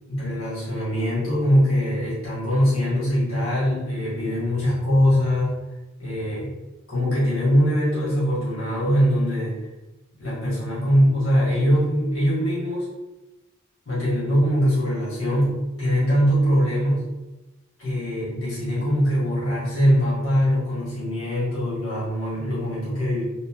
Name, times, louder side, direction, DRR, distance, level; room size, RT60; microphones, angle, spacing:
voice 1, 0.1-5.5 6.0-6.5 6.9-9.6 10.2-12.9 13.8-17.1 17.8-23.2, equal, 85° left, -9 dB, 1.4 m, -22 dB
3.1 x 2.4 x 2.4 m, 1.0 s
head